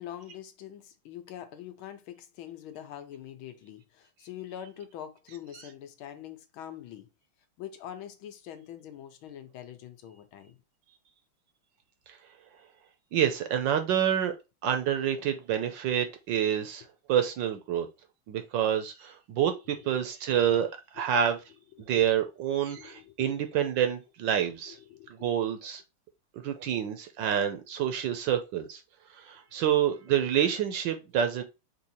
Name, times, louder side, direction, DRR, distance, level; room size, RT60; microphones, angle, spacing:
voice 1, 0.0-7.1 7.6-10.6 19.8-20.4 21.7-22.1 22.8-23.5 24.5-25.1, left 10 dB, 80° left, 1.6 m, -44 dB
voice 2, 13.1-14.3 14.6-16.8 17.1-17.9 18.3-20.7 20.9-21.4 21.8-24.8 25.1-25.8 26.4-28.8 29.2-31.4, right 9 dB, 70° right, 1.2 m, -27 dB
4.6 x 2.8 x 4.1 m
omnidirectional pair, 2.3 m